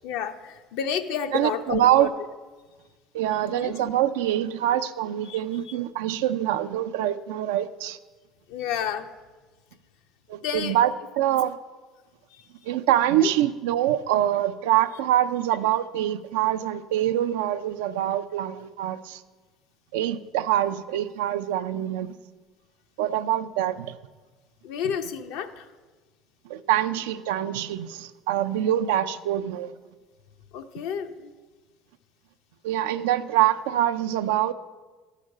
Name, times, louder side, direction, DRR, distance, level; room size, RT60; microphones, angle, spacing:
voice 1, 0.0-2.1 3.5-3.7 5.3-5.4 5.7-5.8 8.5-9.1 10.4-10.8 12.3-12.7 13.2-13.3 24.6-25.7 30.5-31.3, left 8 dB, 75° left, 7 dB, 0.6 m, -31 dB
voice 2, 1.3-2.1 3.1-8.0 10.3-10.9 11.2-11.6 12.6-19.2 19.9-22.1 23.0-24.0 26.5-29.7 32.6-34.5, right 12 dB, 85° right, 11 dB, 0.4 m, -25 dB
13.0 x 5.0 x 5.4 m, 1.3 s
supercardioid pair, 90°, 0 cm